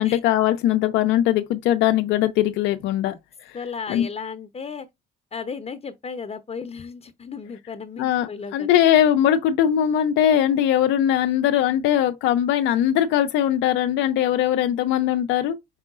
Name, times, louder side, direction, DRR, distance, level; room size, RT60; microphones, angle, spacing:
voice 1, 0.0-3.1 3.5-3.6 3.9-4.1 8.0-15.6, left 11 dB, 80° left, 0.5 m, -20 dB
voice 2, 3.5-4.9 5.3-8.7, left 5 dB, 35° left, 0.7 m, -34 dB
5.5 x 3.6 x 2.4 m
supercardioid pair, 60°, 19 cm